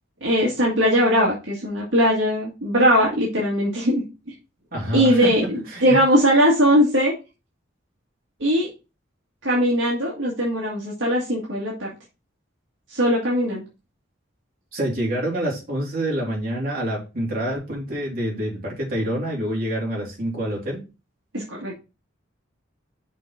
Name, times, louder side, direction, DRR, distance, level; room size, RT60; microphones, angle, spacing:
voice 1, 0.2-4.0 4.9-7.1 8.4-8.7 9.4-11.9 12.9-13.6 21.3-21.7, equal, 70° right, -4 dB, 2.1 m, -20 dB
voice 2, 4.7-5.3 5.7-6.0 14.7-20.8, right 1 dB, 45° right, -2 dB, 3.2 m, -27 dB
6.2 x 4.1 x 5.8 m, 0.29 s
head